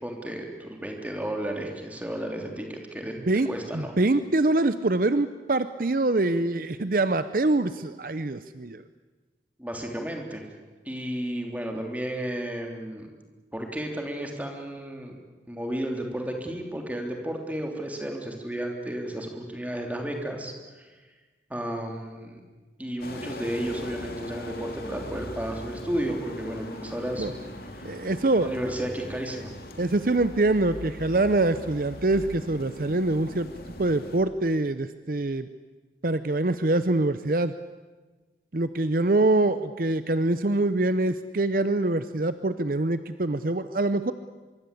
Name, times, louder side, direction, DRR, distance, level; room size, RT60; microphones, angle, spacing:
voice 1, 0.0-3.1 3.4-3.9 9.6-10.4 10.8-13.1 13.5-15.2 15.5-20.9 21.5-22.4 22.8-27.9 28.4-29.5, right 1 dB, 10° right, 2 dB, 3.3 m, -33 dB
voice 2, 3.3-8.8 27.2-27.3 27.8-28.5 29.8-33.5 33.8-35.5 36.0-37.5 38.5-44.1, right 2 dB, 50° right, 12 dB, 0.7 m, -24 dB
sound 1, 23.0-34.2, left 1 dB, 55° left, 2.7 m, -41 dB
24.0 x 24.0 x 8.4 m, 1.3 s
head